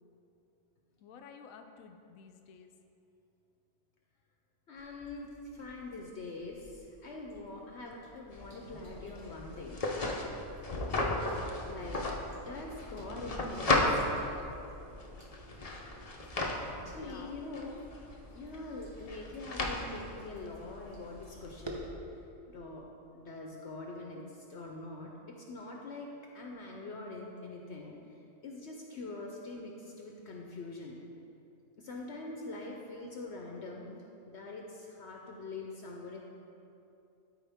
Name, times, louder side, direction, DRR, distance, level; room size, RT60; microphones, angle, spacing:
voice 1, 1.0-2.7 10.9-11.2 16.8-17.4, left 6 dB, 85° left, 5 dB, 1.0 m, -52 dB
voice 2, 4.7-9.8 11.6-12.0 12.3-14.3 16.6-17.8 18.3-21.9 22.5-22.9 23.1-28.0 28.4-31.0 31.8-34.0 34.3-36.2, left 2 dB, 60° left, 0 dB, 0.9 m, -44 dB
sound 1, 4.8-21.9, equal, 25° right, 0.7 m, -53 dB
sound 2, 8.3-21.7, left 2 dB, 35° left, 0.6 m, -36 dB
13.0 x 4.6 x 3.5 m, 2.7 s
omnidirectional pair, 1.4 m